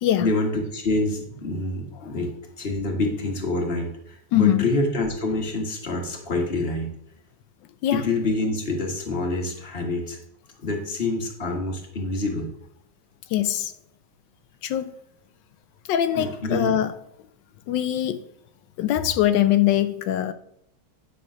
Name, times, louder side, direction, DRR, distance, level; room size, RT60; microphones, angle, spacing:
voice 1, 0.2-6.9 7.9-10.2 10.6-12.5 16.1-16.8, left 2 dB, 35° left, 1 dB, 1.7 m, -26 dB
voice 2, 4.3-4.6 7.8-8.0 13.3-13.7 14.6-14.9 15.9-16.9 17.7-18.2 18.8-20.3, left 12 dB, 85° left, 11 dB, 1.3 m, -22 dB
10.0 x 3.8 x 6.1 m, 0.71 s
omnidirectional pair, 1.9 m